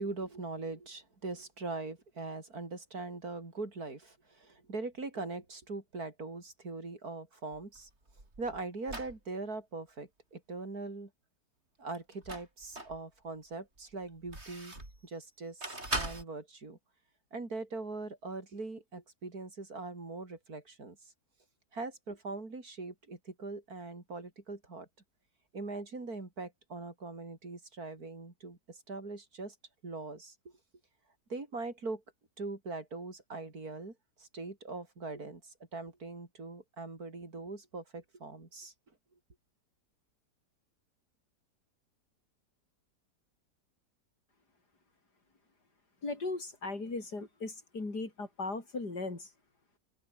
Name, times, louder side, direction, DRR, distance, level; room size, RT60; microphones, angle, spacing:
voice 1, 0.0-7.9 8.4-11.1 11.8-14.7 15.0-16.8 17.3-21.0 21.7-24.9 25.5-29.5 29.8-30.5 31.3-32.0 32.4-38.7, right 3 dB, 60° right, 4.5 m, -41 dB
sound 1, 7.5-9.2 11.9-13.0 13.5-15.0 15.6-16.2, right 2 dB, 40° right, 6.1 m, -40 dB
voice 2, 46.0-49.3, left 3 dB, 75° left, 5.4 m, -37 dB
open air
omnidirectional pair, 1.8 m